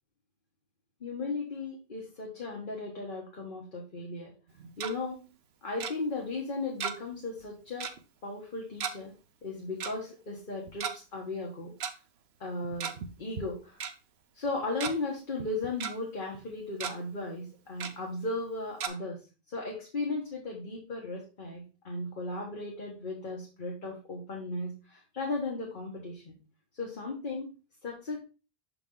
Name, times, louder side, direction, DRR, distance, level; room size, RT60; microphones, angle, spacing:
voice 1, 1.0-4.3 4.8-5.2 5.6-7.9 8.2-9.1 9.4-11.9 12.4-12.9 13.2-13.8 14.3-19.2 19.5-26.3 26.7-27.5 27.8-28.2, left 2 dB, 55° left, -1 dB, 1.4 m, -36 dB
Tick-tock, 4.5-4.9 5.8-5.9 6.8-7.2 7.4-7.5 7.8-8.0 8.8-8.9 9.8-9.9 10.7-10.9 11.8-11.9 12.6-13.1 13.4-13.5 13.8-13.9 14.5-14.9 15.4-15.9 16.3-16.5 16.8-16.9 17.8-17.9 18.8-18.9, right 7 dB, 80° right, 1.0 m, -35 dB
6.7 x 4.8 x 3.8 m, 0.33 s
omnidirectional pair, 1.0 m